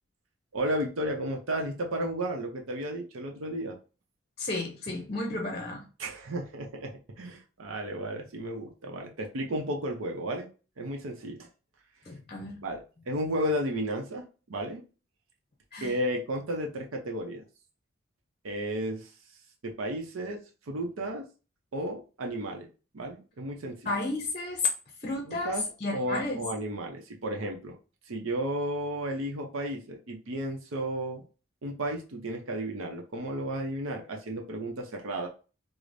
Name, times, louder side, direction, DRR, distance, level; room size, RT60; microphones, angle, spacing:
voice 1, 0.5-3.8 6.0-10.5 10.8-11.5 12.6-14.8 15.8-17.4 18.4-19.1 19.6-20.4 20.7-21.2 21.7-22.7 22.9-23.9 25.3-27.8 28.1-31.2 31.6-35.3, right 1 dB, 90° right, 0.7 m, -33 dB
voice 2, 4.4-5.9 12.1-12.6 15.7-15.9 23.9-24.7 25.0-26.4, left 3 dB, 30° left, 0.6 m, -32 dB
4.8 x 2.1 x 2.5 m
head